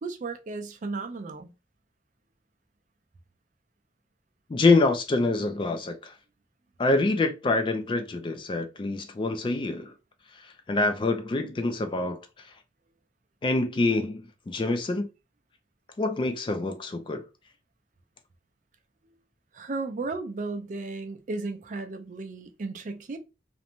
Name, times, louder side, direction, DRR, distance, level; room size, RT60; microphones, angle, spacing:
voice 1, 0.0-1.5 19.0-19.1 19.5-23.2, right 3 dB, 45° right, 0.4 m, -34 dB
voice 2, 4.5-6.1 6.8-9.9 10.4-12.2 13.4-15.1 16.0-17.2, left 3 dB, 30° left, 0.3 m, -26 dB
2.5 x 2.1 x 2.9 m
head